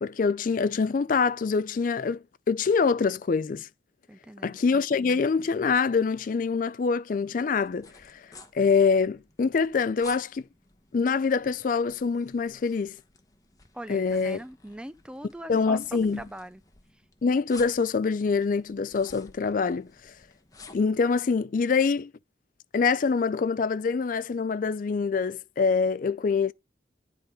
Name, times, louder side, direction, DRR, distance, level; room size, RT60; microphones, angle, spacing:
voice 1, 0.0-3.7 4.4-8.2 8.5-10.4 10.9-13.0 13.9-14.4 15.5-16.2 17.2-20.1 20.7-22.1 22.7-26.5, left 5 dB, 50° left, 0.4 m, -25 dB
voice 2, 4.1-4.6 13.7-16.6, right 1 dB, 5° right, 0.5 m, -41 dB
sound 1, 7.6-21.0, left 4 dB, 20° left, 1.1 m, -52 dB
10.5 x 3.9 x 4.9 m
head